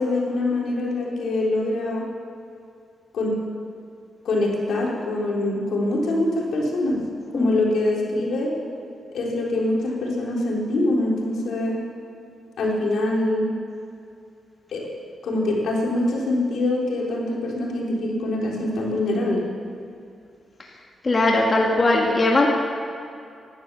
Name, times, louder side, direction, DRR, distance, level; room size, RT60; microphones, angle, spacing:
voice 1, 0.0-2.0 3.1-3.3 4.2-7.0 7.3-8.5 9.1-11.8 12.6-13.5 14.7-14.8 15.2-19.4, left 2 dB, 80° left, -3 dB, 3.8 m, -24 dB
voice 2, 21.0-22.5, left 2 dB, 35° left, -1 dB, 1.9 m, -19 dB
17.0 x 12.0 x 6.9 m, 2.5 s
cardioid pair, 95°, 0 cm